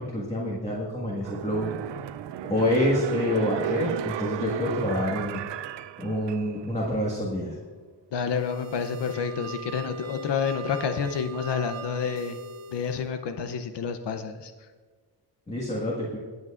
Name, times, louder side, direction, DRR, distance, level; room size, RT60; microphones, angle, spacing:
voice 1, 0.0-1.7 2.5-5.4 6.0-7.5 15.5-16.2, left 1 dB, 15° left, -5 dB, 1.7 m, -27 dB
sound 1, 1.2-6.8 7.1-7.2, right 10 dB, 90° right, 0.5 m, -34 dB
voice 2, 8.1-12.4 12.7-14.5, left 6 dB, 75° left, 8 dB, 0.8 m, -29 dB
sound 2, 8.2-13.1, right 3 dB, 40° right, 0.6 m, -41 dB
20.0 x 8.1 x 2.5 m, 1.5 s
wide cardioid pair, 165°, 42 cm